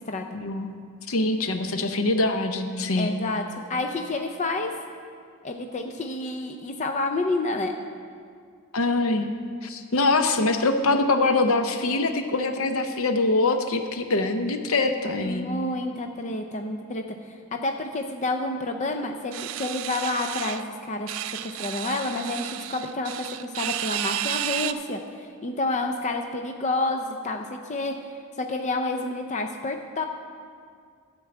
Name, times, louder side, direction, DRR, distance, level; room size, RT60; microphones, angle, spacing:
voice 1, 0.3-0.8 1.1-3.1 8.7-9.3 9.6-15.5, left 2 dB, 70° left, 7 dB, 0.7 m, -24 dB
voice 2, 3.0-3.4 3.7-4.7 5.4-7.8 15.2-21.1 21.4-23.1 23.4-27.9 28.4-30.0, left 2 dB, 35° left, 5 dB, 0.5 m, -29 dB
sound 1, 19.3-20.6 21.1-24.7, right 12 dB, 65° right, 0.4 m, -32 dB
12.5 x 4.6 x 7.7 m, 2.2 s
head